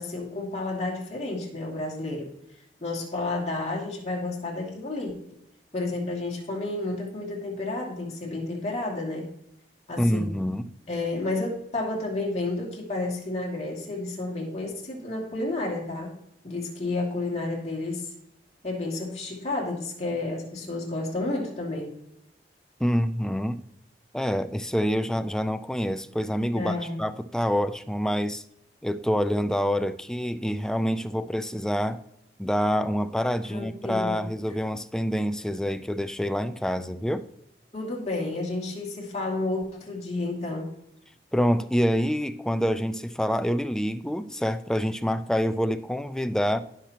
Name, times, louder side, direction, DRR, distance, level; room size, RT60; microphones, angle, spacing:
voice 1, 0.0-2.3 2.8-5.4 5.7-9.3 9.9-10.3 10.9-16.1 16.4-18.1 18.6-21.9 26.5-27.0 33.5-34.2 37.7-40.7, left 2 dB, 40° left, -2 dB, 2.5 m, -31 dB
voice 2, 10.0-10.7 22.8-23.6 24.1-28.4 28.8-32.0 32.4-37.2 41.3-46.6, equal, 5° left, 11 dB, 0.3 m, -26 dB
16.0 x 5.8 x 2.9 m, 0.79 s
head